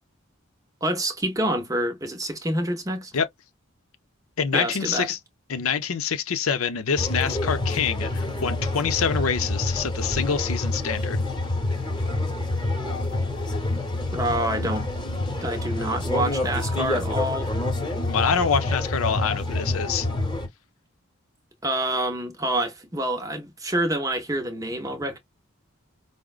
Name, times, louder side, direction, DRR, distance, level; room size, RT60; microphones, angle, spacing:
voice 1, 0.8-3.1 4.5-5.1 14.1-14.9 15.4-17.6 21.6-25.2, right 1 dB, 15° right, 0.6 m, -27 dB
voice 2, 4.4-5.2 5.5-11.2 18.1-20.1, left 6 dB, 80° left, 0.6 m, -26 dB
sound 1, 7.0-20.5, left 2 dB, 20° left, 0.8 m, -27 dB
4.9 x 2.1 x 2.3 m
head